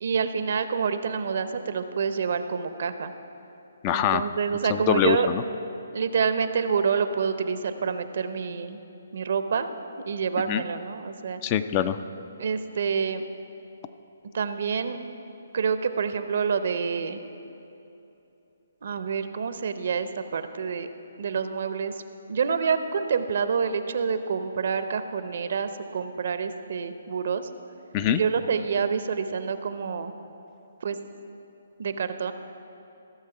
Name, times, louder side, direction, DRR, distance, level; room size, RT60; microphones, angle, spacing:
voice 1, 0.0-3.1 3.9-5.3 5.9-8.8 9.1-9.7 10.1-11.4 12.4-13.2 14.3-15.0 15.5-17.2 18.8-20.9 21.2-21.9 22.3-27.4 28.1-30.1 30.8-31.0 31.8-32.3, right 6 dB, 60° right, 10 dB, 0.6 m, -27 dB
voice 2, 3.8-4.2 4.7-5.4 10.5-10.6 11.4-12.0 27.9-28.2, left 10 dB, 30° left, 12 dB, 0.4 m, -23 dB
15.5 x 6.7 x 4.9 m, 2.9 s
figure-of-eight pair, 140°, 0 cm